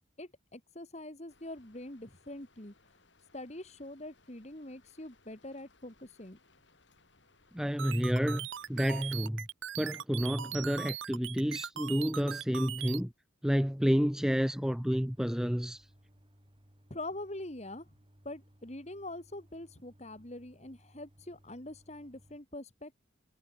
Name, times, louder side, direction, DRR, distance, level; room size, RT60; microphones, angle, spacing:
voice 1, 0.2-2.7 3.3-6.4 16.9-17.9 18.2-22.9, left 1 dB, 35° left, 2.2 m, -44 dB
Rain, 1.3-9.3, left 3 dB, 65° left, 6.9 m, -66 dB
voice 2, 7.5-9.5 9.8-13.1 13.4-15.9, equal, 5° right, 0.5 m, -30 dB
sound 1, 7.8-13.0, right 11 dB, 75° right, 0.5 m, -40 dB
sound 2, 14.6-22.4, equal, 25° right, 3.5 m, -63 dB
head